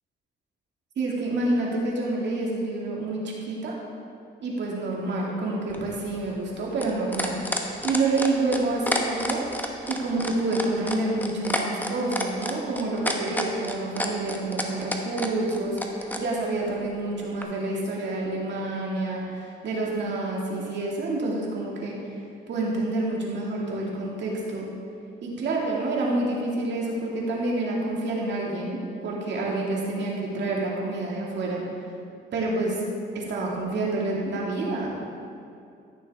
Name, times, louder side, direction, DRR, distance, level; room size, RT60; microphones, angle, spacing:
voice 1, 1.0-3.8 4.4-7.4 7.8-9.4 9.9-22.0 22.5-24.7 25.2-31.6 32.3-32.8 33.1-34.9, right 2 dB, 65° right, -3 dB, 2.2 m, -28 dB
sound 1, 5.7-16.2 17.4-17.5, left 1 dB, 10° left, 1.0 m, -29 dB
14.5 x 6.6 x 3.5 m, 2.6 s
cardioid pair, 90°, 20 cm